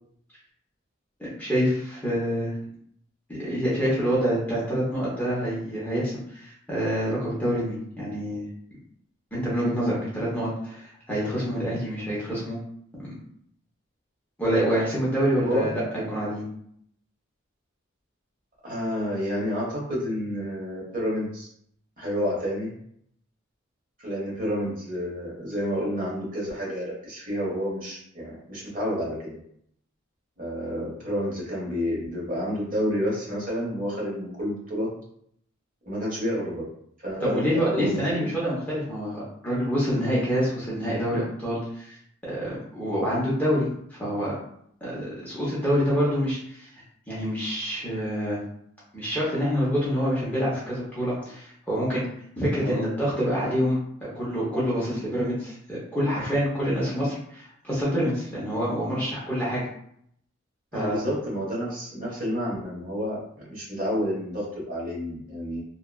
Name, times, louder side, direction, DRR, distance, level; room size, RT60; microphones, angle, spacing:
voice 1, 1.2-2.5 3.3-8.4 9.3-12.6 13.0-13.1 14.4-16.5 37.2-42.0 42.2-44.3 44.8-46.7 47.1-48.4 48.9-52.0 52.4-59.7 60.7-61.0, equal, 10° left, -8 dB, 0.7 m, -27 dB
voice 2, 15.4-15.7 18.6-21.5 22.0-22.8 24.0-29.4 30.4-34.9 35.8-36.7 37.0-38.4 52.5-52.8 60.7-65.6, equal, 40° right, -5 dB, 0.9 m, -29 dB
2.8 x 2.3 x 2.2 m, 0.69 s
head